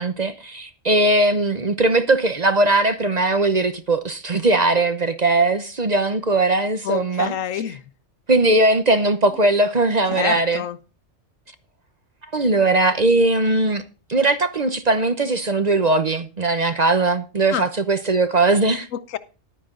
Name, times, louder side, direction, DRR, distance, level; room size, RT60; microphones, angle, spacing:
voice 1, 0.0-7.3 8.3-10.6 12.3-13.8 14.1-18.9, right 2 dB, 35° right, 0.8 m, -19 dB
voice 2, 6.8-7.8 10.1-10.8 17.5-17.6 18.9-19.2, left 10 dB, 80° left, 1.1 m, -27 dB
11.0 x 9.7 x 3.8 m
omnidirectional pair, 1.3 m